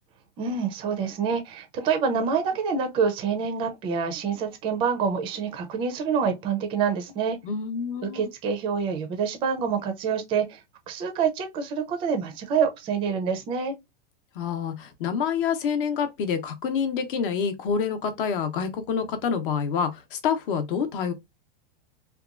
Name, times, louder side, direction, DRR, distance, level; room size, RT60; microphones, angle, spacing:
voice 1, 0.4-7.4 8.0-10.6 10.9-13.7, right 6 dB, 20° right, 0.4 m, -26 dB
voice 2, 7.4-8.3 14.4-21.1, left 6 dB, 60° left, 0.7 m, -27 dB
2.9 x 2.2 x 2.4 m
supercardioid pair, 155°, 30 cm